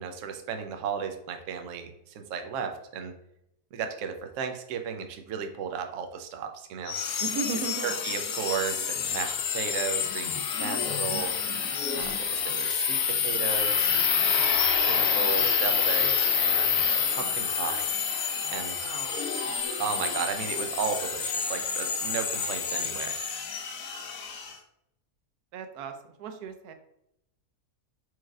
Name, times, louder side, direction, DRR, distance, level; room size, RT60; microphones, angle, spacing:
voice 1, 0.0-1.9 2.1-3.1 3.7-6.9 7.8-11.3 11.9-13.9 14.8-17.9 18.5-18.9 19.8-23.1, right 7 dB, 65° right, 5 dB, 0.9 m, -34 dB
sound 1, 6.9-24.5, left 6 dB, 80° left, 1.2 m, -28 dB
voice 2, 7.2-7.9 18.8-19.1 19.4-19.6 25.5-25.9 26.2-26.7, right 5 dB, 85° right, 7 dB, 1.1 m, -35 dB
4.6 x 4.5 x 2.4 m, 0.81 s
omnidirectional pair, 1.6 m